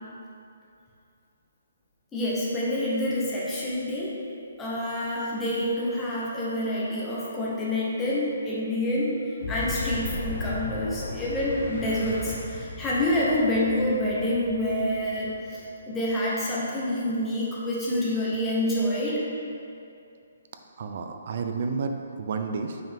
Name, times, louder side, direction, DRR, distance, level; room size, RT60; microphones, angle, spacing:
voice 1, 2.1-4.2 4.6-9.1 9.5-19.2, left 1 dB, 5° left, -7 dB, 0.7 m, -27 dB
Boom, 9.4-16.0, left 3 dB, 50° left, 0.7 m, -36 dB
voice 2, 20.8-22.8, right 4 dB, 35° right, 5 dB, 0.3 m, -31 dB
5.8 x 4.7 x 3.5 m, 2.6 s
hypercardioid pair, 175°, 0 cm